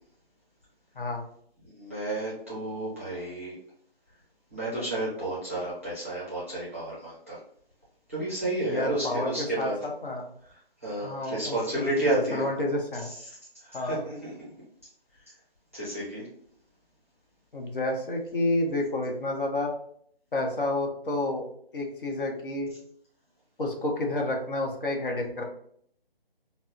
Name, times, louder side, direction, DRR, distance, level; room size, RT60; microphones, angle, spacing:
voice 1, 1.7-3.5 4.5-7.4 8.1-9.8 10.8-12.5 13.3-14.3 15.7-16.3, right 1 dB, 15° right, -8 dB, 0.5 m, -31 dB
voice 2, 8.6-10.2 11.0-12.1 12.3-13.1 13.7-14.0 17.5-19.7 20.3-22.7 23.6-25.4, left 2 dB, 60° left, 1 dB, 0.8 m, -30 dB
4.1 x 2.0 x 2.4 m, 0.65 s
figure-of-eight pair, 165°, 30 cm